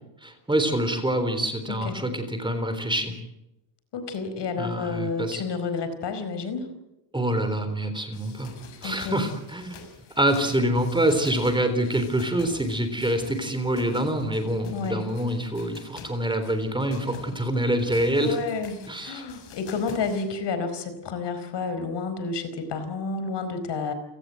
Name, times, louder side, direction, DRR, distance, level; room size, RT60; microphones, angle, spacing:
voice 1, 0.2-3.1 4.6-5.4 7.1-8.5 8.8-9.8 10.2-18.4 18.9-19.2, right 1 dB, 10° right, 8 dB, 3.7 m, -26 dB
voice 2, 3.9-6.7 8.8-9.2 14.7-15.1 18.2-23.9, left 4 dB, 55° left, 10 dB, 4.7 m, -30 dB
sound 1, 8.1-20.3, left 6 dB, 75° left, 6.4 m, -47 dB
30.0 x 18.0 x 7.8 m, 0.93 s
cardioid pair, 150°, 49 cm